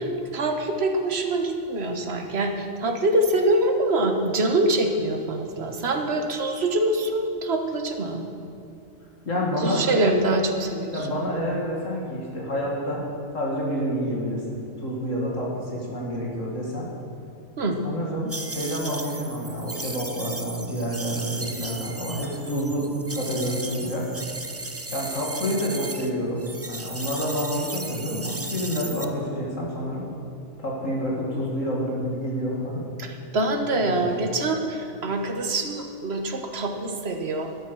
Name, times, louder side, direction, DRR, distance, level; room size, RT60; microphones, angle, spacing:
voice 1, 0.3-8.2 9.6-11.0 17.6-17.8 33.0-37.5, right 1 dB, 45° right, 4 dB, 1.4 m, -24 dB
voice 2, 9.2-9.8 10.9-13.1 13.3-16.9 17.8-24.1 24.9-30.0 30.6-32.8 33.8-34.1, equal, 60° left, -3 dB, 2.5 m, -28 dB
sound 1, 18.3-26.1 26.4-29.1, right 2 dB, 20° right, 0.4 m, -35 dB
13.0 x 11.0 x 6.3 m, 2.7 s
omnidirectional pair, 1.5 m